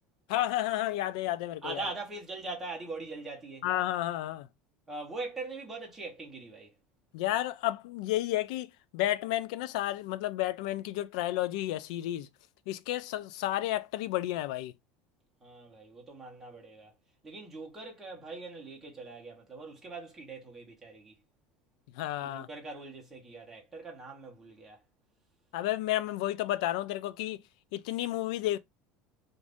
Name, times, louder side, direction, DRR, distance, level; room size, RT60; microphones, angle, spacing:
voice 1, 0.3-1.8 3.6-4.5 7.1-8.7 8.9-12.3 12.7-14.7 22.0-22.5 25.5-27.4 27.7-28.6, left 14 dB, 75° left, 0.3 m, -31 dB
voice 2, 1.6-3.7 4.9-6.7 15.4-16.9 17.2-21.2 22.2-24.8, right 3 dB, 10° right, 1.0 m, -42 dB
2.6 x 2.5 x 3.4 m
cardioid pair, 170°, 4 cm